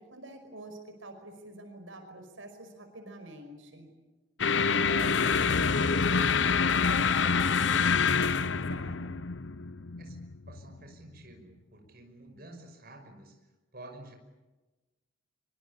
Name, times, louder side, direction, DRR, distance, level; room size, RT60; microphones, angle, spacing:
voice 1, 0.0-3.9 4.5-9.2, right 1 dB, 80° right, 6 dB, 5.4 m, -46 dB
sound 1, 4.4-10.8, left 5 dB, 70° left, 0.8 m, -26 dB
voice 2, 10.5-13.3 13.7-14.1, right 1 dB, 45° right, 3 dB, 5.8 m, -50 dB
25.0 x 24.5 x 8.6 m, 1.1 s
head